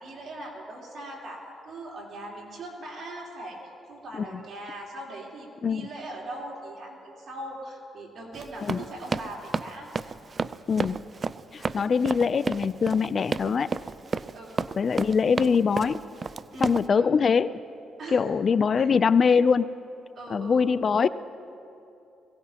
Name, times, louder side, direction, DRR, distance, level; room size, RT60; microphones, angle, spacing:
voice 1, 0.0-9.9 11.5-11.9 14.3-14.5 16.5-17.1 18.0-18.2 18.8-18.9 20.2-20.7, right 1 dB, 55° right, -3 dB, 3.5 m, -40 dB
Run, 8.3-16.9, right 5 dB, 35° right, 0.3 m, -31 dB
voice 2, 10.7-11.0 11.5-13.7 14.8-16.0 16.6-17.5 18.1-19.7 20.3-21.1, left 6 dB, 45° left, 15 dB, 0.3 m, -23 dB
22.0 x 16.5 x 2.9 m, 2.7 s
cardioid pair, 90°, 0 cm